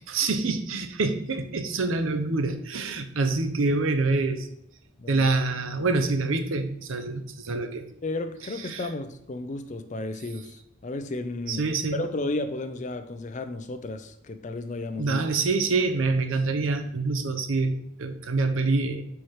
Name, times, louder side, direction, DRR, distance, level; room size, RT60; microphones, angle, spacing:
voice 1, 0.1-4.5 5.1-7.9 8.7-8.8 11.5-12.0 15.0-19.0, right 3 dB, 70° right, 8 dB, 0.6 m, -26 dB
voice 2, 8.0-15.2, left 2 dB, 35° left, 8 dB, 0.4 m, -33 dB
4.7 x 4.4 x 4.7 m, 0.75 s
head